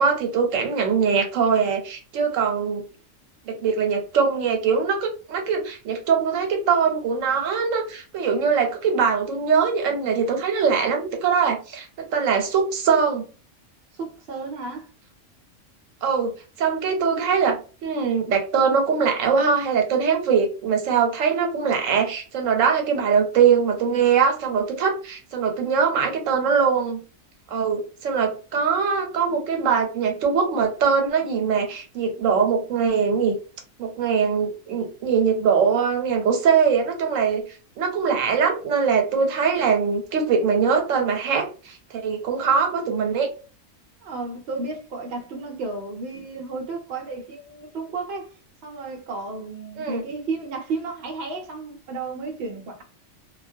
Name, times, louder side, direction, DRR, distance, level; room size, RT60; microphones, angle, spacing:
voice 1, 0.0-2.8 3.5-13.2 16.0-27.0 27.5-33.3 33.8-37.4 37.8-43.3 49.8-50.0, right 6 dB, 85° right, 1.0 m, -22 dB
voice 2, 13.9-14.9 44.0-48.3 48.6-52.8, right 3 dB, 65° right, 0.8 m, -33 dB
2.2 x 2.1 x 2.5 m
omnidirectional pair, 1.3 m